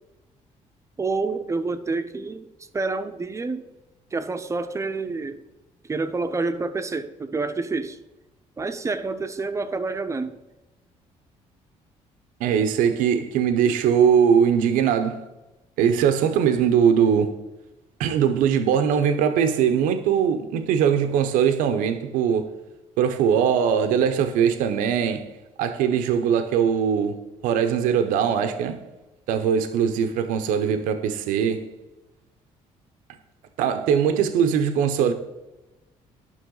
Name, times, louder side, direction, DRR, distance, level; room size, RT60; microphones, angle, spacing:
voice 1, 1.0-2.5 2.7-3.7 4.1-5.4 5.9-8.0 8.6-10.4, right 3 dB, 20° right, 0.6 m, -28 dB
voice 2, 12.4-15.2 15.8-17.4 18.0-22.5 23.0-25.3 25.6-28.8 29.3-31.7 33.6-35.1, right 7 dB, 90° right, 0.7 m, -21 dB
10.5 x 5.9 x 3.9 m
cardioid pair, 100°, 13 cm